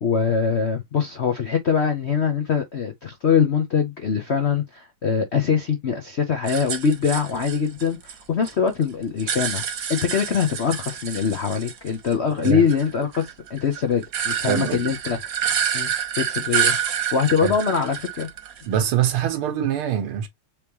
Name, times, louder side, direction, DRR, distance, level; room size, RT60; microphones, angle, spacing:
voice 1, 0.0-9.6 9.9-15.2 15.7-16.8 17.1-18.3, left 6 dB, 70° left, 0.6 m, -23 dB
sound 1, 6.5-8.5 8.8-12.1 12.4-18.8, right 8 dB, 55° right, 1.2 m, -28 dB
voice 2, 14.5-14.9 17.4-17.5 18.7-20.3, right 9 dB, 85° right, 1.9 m, -23 dB
4.5 x 3.5 x 2.9 m
omnidirectional pair, 2.3 m